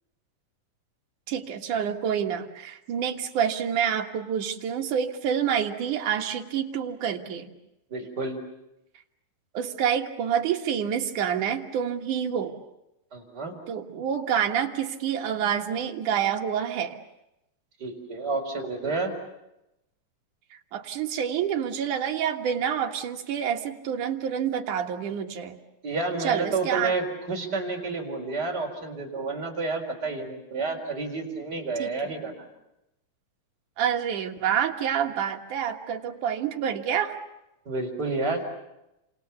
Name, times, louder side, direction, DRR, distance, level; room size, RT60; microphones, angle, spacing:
voice 1, 1.3-7.5 9.5-12.6 13.7-17.0 20.5-25.6 26.2-27.0 31.8-32.1 33.8-37.2, right 8 dB, 65° right, 4 dB, 3.0 m, -28 dB
voice 2, 7.9-8.4 13.1-13.6 17.8-19.1 25.8-32.4 37.7-38.4, right 3 dB, 30° right, 1 dB, 4.6 m, -30 dB
30.0 x 26.5 x 7.0 m, 0.89 s
omnidirectional pair, 4.0 m